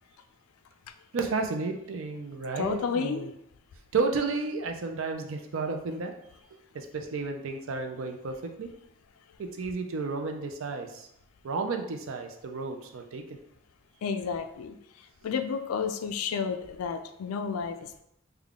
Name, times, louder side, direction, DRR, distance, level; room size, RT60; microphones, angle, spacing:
voice 1, 1.1-3.3 3.9-6.1 6.7-8.7 9.4-11.1 11.4-13.4, right 4 dB, 65° right, 5 dB, 0.4 m, -32 dB
voice 2, 2.6-3.3 14.0-14.8 15.2-18.0, left 6 dB, 85° left, 8 dB, 0.4 m, -31 dB
3.6 x 2.2 x 3.5 m, 0.77 s
head